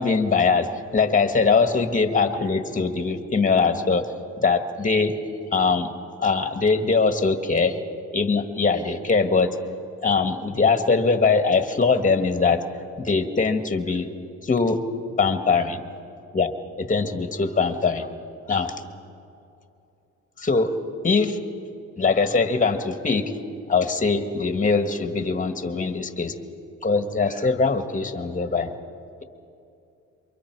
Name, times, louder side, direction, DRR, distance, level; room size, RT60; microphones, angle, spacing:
voice 1, 0.0-4.1 4.4-5.1 5.5-5.9 6.2-7.8 8.1-9.6 10.0-12.6 13.0-14.1 14.4-14.8 15.2-15.7 16.3-18.1 18.5-18.7 20.4-20.7 21.0-21.4 22.0-23.3 23.7-26.3 26.8-28.7, left 4 dB, 25° left, 8 dB, 1.7 m, -22 dB
28.0 x 24.0 x 4.7 m, 2.6 s
cardioid pair, 90°, 30 cm